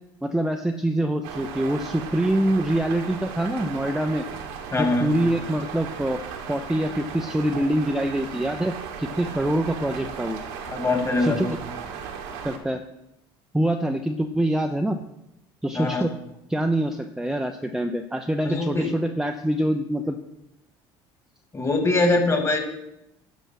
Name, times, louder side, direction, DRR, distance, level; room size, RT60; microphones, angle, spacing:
voice 1, 0.2-4.2 4.7-6.2 6.5-10.4 11.2-11.6 12.4-12.8 13.5-15.0 15.6-16.1 16.5-20.2, right 1 dB, 5° right, 5 dB, 0.7 m, -25 dB
sound 1, 1.2-12.6, right 6 dB, 85° right, 1.7 m, -36 dB
voice 2, 4.7-5.1 10.7-11.5 15.7-16.1 18.4-18.9 21.5-22.6, left 2 dB, 25° left, 4 dB, 2.4 m, -22 dB
11.0 x 6.2 x 5.9 m, 0.86 s
supercardioid pair, 90°, 12 cm